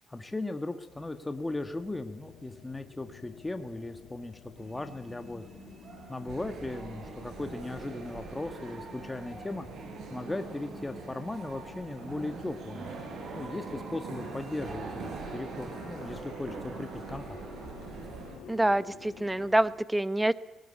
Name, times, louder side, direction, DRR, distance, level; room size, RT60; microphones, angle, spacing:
voice 1, 0.1-5.5 6.1-9.6 10.1-12.9 13.3-17.4, left 2 dB, 15° left, 8 dB, 1.5 m, -37 dB
sound 1, 0.8-19.8, left 9 dB, 85° left, 2.4 m, -53 dB
sound 2, 4.6-16.1, right 2 dB, 45° right, 6.8 m, -48 dB
sound 3, 6.3-18.4, right 4 dB, 70° right, 5.2 m, -43 dB
voice 2, 18.5-20.3, right 1 dB, 10° right, 16 dB, 1.0 m, -26 dB
19.0 x 18.5 x 8.7 m, 1.0 s
cardioid pair, 90°, 0 cm